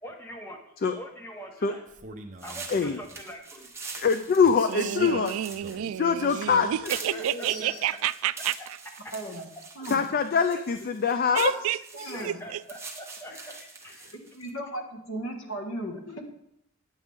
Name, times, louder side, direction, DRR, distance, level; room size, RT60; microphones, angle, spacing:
voice 1, 0.0-0.6 0.9-1.8 2.4-3.7 6.9-7.7 8.6-8.7 12.1-13.5 13.8-14.0, equal, 10° left, 1.2 m, -43 dB
Male speech man speaking, 1.9-3.2 4.4-6.9, right 3 dB, 35° right, 0.8 m, -44 dB
sound 1, 2.4-14.5, right 4 dB, 15° right, 1.0 m, -44 dB
voice 2, 2.7-3.0 4.0-5.4 6.0-7.2 9.9-11.5 14.0-14.1, left 5 dB, 45° left, 0.4 m, -24 dB
voice 3, 4.7-8.5 11.3-11.8 12.2-12.6, right 11 dB, 80° right, 0.3 m, -30 dB
voice 4, 7.0-7.8 9.1-9.5 9.8-10.0 11.9-12.4 14.3-16.2, right 1 dB, 75° left, 1.7 m, -36 dB
9.6 x 7.3 x 3.6 m
head